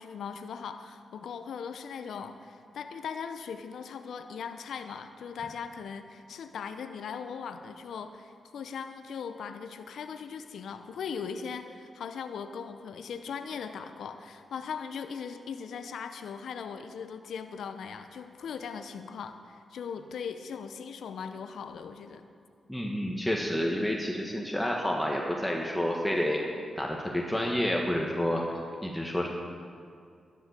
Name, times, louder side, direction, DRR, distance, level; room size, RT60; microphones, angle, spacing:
voice 1, 0.0-22.2, left 6 dB, 80° left, 9 dB, 0.7 m, -39 dB
voice 2, 22.7-26.4 26.8-29.3, equal, 5° left, -1 dB, 1.8 m, -29 dB
12.0 x 10.0 x 6.7 m, 2.2 s
supercardioid pair, 50°, 0 cm